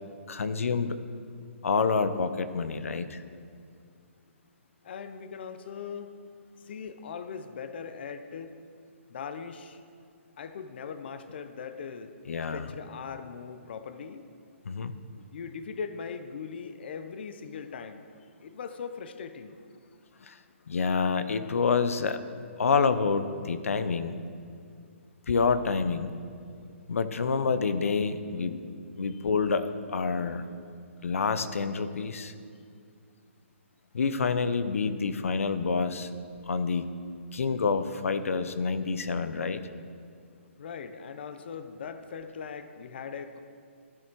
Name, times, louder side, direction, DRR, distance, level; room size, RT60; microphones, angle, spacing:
voice 1, 0.3-1.0 1.6-3.2 12.3-12.7 14.7-14.9 20.3-20.4 20.7-22.2 22.6-24.1 25.3-26.1 26.9-28.6 29.0-30.4 31.0-32.3 33.9-36.1 36.5-36.9 37.3-39.6, left 5 dB, 85° left, 12 dB, 0.8 m, -27 dB
voice 2, 4.8-6.2 6.6-8.5 9.1-9.8 10.4-12.1 12.5-14.2 15.3-18.0 18.4-19.6 29.1-29.2 40.6-43.4, left 6 dB, 50° left, 10 dB, 0.7 m, -40 dB
14.0 x 9.0 x 4.6 m, 2.3 s
hypercardioid pair, 165°, 7 cm